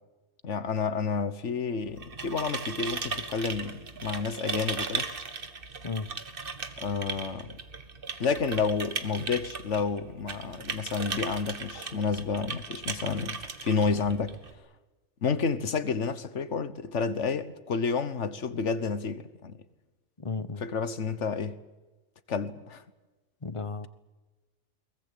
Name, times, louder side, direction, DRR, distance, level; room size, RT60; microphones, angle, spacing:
voice 1, 0.4-5.1 6.8-7.6 8.2-14.4 15.2-19.6 20.6-21.6 22.3-22.8, left 5 dB, 75° left, 1.5 m, -30 dB
sound 1, 1.9-14.5, right 4 dB, 50° right, 1.6 m, -37 dB
voice 2, 20.2-20.6 23.4-23.9, left 4 dB, 30° left, 1.0 m, -34 dB
22.5 x 19.5 x 8.4 m
omnidirectional pair, 1.2 m